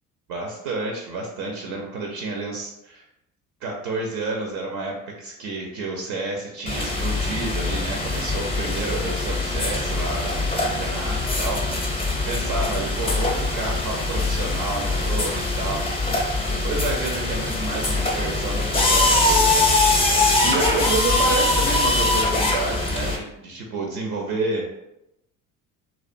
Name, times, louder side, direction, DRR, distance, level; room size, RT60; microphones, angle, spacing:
voice 1, 0.3-3.1 3.6-16.2 16.5-19.7 20.0-24.8, right 2 dB, 60° right, 1 dB, 0.5 m, -30 dB
sound 1, 6.7-23.2, left 2 dB, 15° left, 0.5 m, -22 dB
2.4 x 2.2 x 2.4 m, 0.87 s
hypercardioid pair, 60°, 44 cm